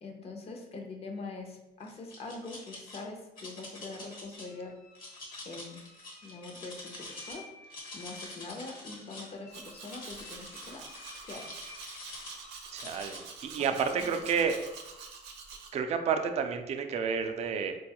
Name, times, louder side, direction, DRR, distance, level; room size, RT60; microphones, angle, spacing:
voice 1, 0.0-4.7 5.4-5.8 6.2-10.8 11.3-11.7 13.8-14.2, left 3 dB, 35° left, 2 dB, 0.6 m, -43 dB
sound 1, 1.8-3.0 3.4-4.4 4.9-7.4 7.6-9.3 9.8-12.4 12.8-13.2, left 2 dB, 55° left, 1.2 m, -46 dB
sound 2, 4.4-13.3, left 3 dB, 70° left, 0.8 m, -56 dB
Domestic sounds home sounds, 9.5-15.7, right 5 dB, 90° right, 0.5 m, -47 dB
voice 2, 12.7-14.6 15.7-17.8, right 6 dB, 40° right, 6 dB, 0.4 m, -30 dB
4.0 x 2.3 x 2.9 m, 0.97 s
cardioid pair, 110°, 17 cm